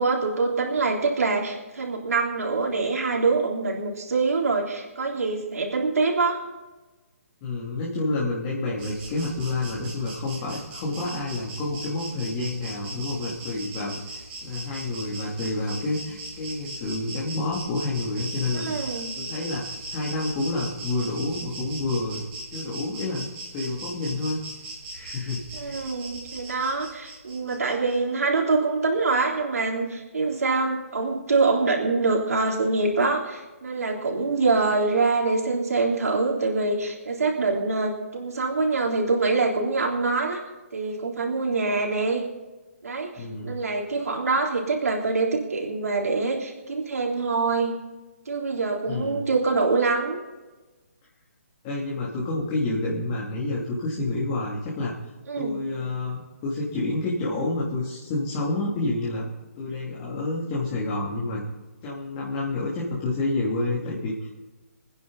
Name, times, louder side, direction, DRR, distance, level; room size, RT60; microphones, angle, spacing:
voice 1, 0.0-6.4 18.6-19.1 25.5-40.4 40.7-42.2 42.8-47.8 48.3-50.2 55.3-55.6, right 3 dB, 85° right, 0 dB, 3.6 m, -25 dB
voice 2, 7.4-18.7 19.1-22.2 22.5-23.3 23.5-24.4 24.9-25.9 43.2-43.5 48.9-49.2 51.6-54.9 55.3-59.3 59.6-61.4 61.8-64.4, left 2 dB, 25° left, -6 dB, 2.9 m, -29 dB
Insect, 8.8-28.0, right 2 dB, 15° right, 4.0 m, -39 dB
24.0 x 9.9 x 4.1 m, 1.2 s
hypercardioid pair, 165°, 8 cm